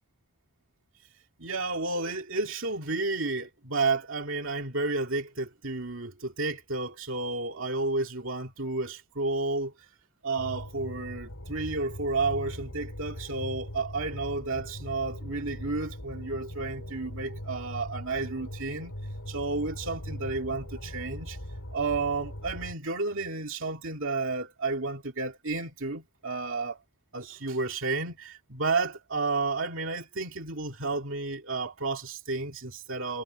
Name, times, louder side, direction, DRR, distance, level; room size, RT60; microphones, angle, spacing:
voice 1, 1.4-9.7 10.2-18.9 19.3-21.4 21.7-26.8 27.1-33.2, right 3 dB, 60° right, 2.6 m, -31 dB
sound 1, 10.4-22.7, equal, 80° left, 5.3 m, -40 dB
head